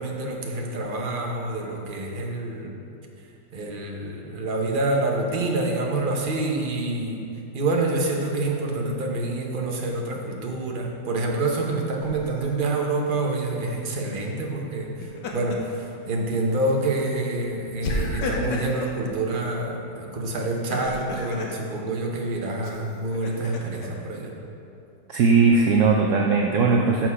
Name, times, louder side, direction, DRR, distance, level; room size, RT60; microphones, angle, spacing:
voice 1, 0.0-2.7 3.5-7.2 7.5-14.9 15.3-24.3, right 2 dB, 40° right, 0 dB, 0.9 m, -27 dB
Laughter, 12.0-12.5 14.8-15.8 16.2-16.4 17.8-19.0 20.5-21.6 22.6-23.9, left 2 dB, 85° left, 1.5 m, -32 dB
voice 2, 25.1-27.1, right 4 dB, 70° right, 1 dB, 0.7 m, -19 dB
6.5 x 6.0 x 5.6 m, 2.8 s
omnidirectional pair, 1.8 m